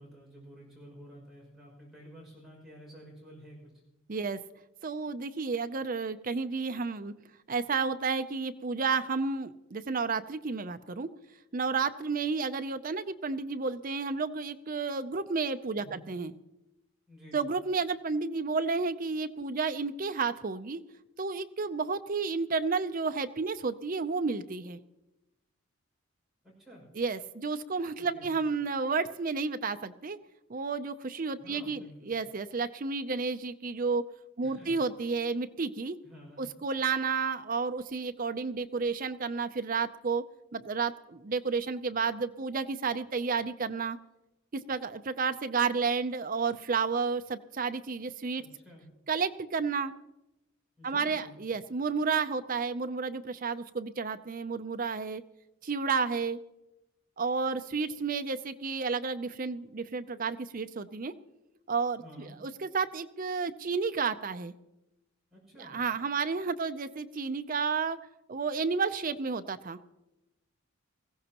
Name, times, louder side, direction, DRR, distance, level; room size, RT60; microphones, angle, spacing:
voice 1, 0.0-3.7 15.8-16.1 17.1-17.5 26.4-26.8 28.0-28.5 31.4-32.1 34.4-34.8 36.0-36.5 48.4-48.9 50.8-51.4 62.0-62.4 65.3-65.8, equal, ahead, -5 dB, 6.0 m, -51 dB
voice 2, 4.8-7.1 7.5-11.1 11.5-16.3 17.3-20.8 21.2-24.8 27.0-30.2 30.5-34.0 34.4-36.0 36.4-40.2 40.5-44.0 44.5-48.4 49.1-49.9 50.8-55.2 55.6-56.4 57.2-61.2 61.7-64.5 65.6-68.0 68.3-69.8, right 4 dB, 40° right, 10 dB, 0.5 m, -31 dB
20.5 x 15.5 x 3.0 m, 0.95 s
head